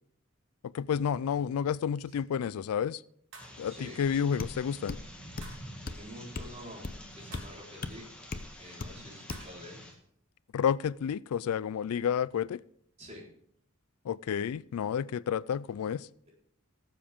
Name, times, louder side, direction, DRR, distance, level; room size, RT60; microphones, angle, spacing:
voice 1, 0.7-3.0 3.6-5.0 10.5-12.6 14.1-16.1, left 8 dB, 85° left, 0.3 m, -30 dB
sound 1, 3.3-3.6 5.4-5.7 7.3-7.6 9.3-9.5, right 3 dB, 65° right, 3.4 m, -50 dB
sound 2, 3.4-9.9, equal, 5° left, 2.0 m, -49 dB
voice 2, 3.7-4.1 5.9-8.1 8.6-9.8 13.0-13.3, equal, 30° right, 4.1 m, -47 dB
sound 3, 4.4-4.6 4.9-5.1 5.4-5.6 5.9-6.0 6.4-6.5 6.8-7.0 7.3-7.5 7.8-8.0 8.3-8.5 8.8-9.0 9.3-9.5, left 3 dB, 45° left, 0.7 m, -37 dB
18.5 x 7.5 x 3.6 m
head